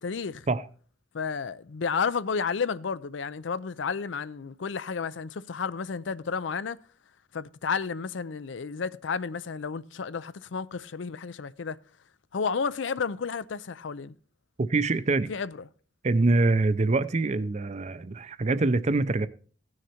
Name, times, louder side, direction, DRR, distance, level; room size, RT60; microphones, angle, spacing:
voice 1, 0.0-0.5 1.1-6.8 7.3-11.8 12.3-14.1 15.3-15.6, left 5 dB, 75° left, 0.5 m, -31 dB
voice 2, 14.6-15.3 16.0-19.3, right 3 dB, 35° right, 0.6 m, -24 dB
16.5 x 6.5 x 4.3 m
head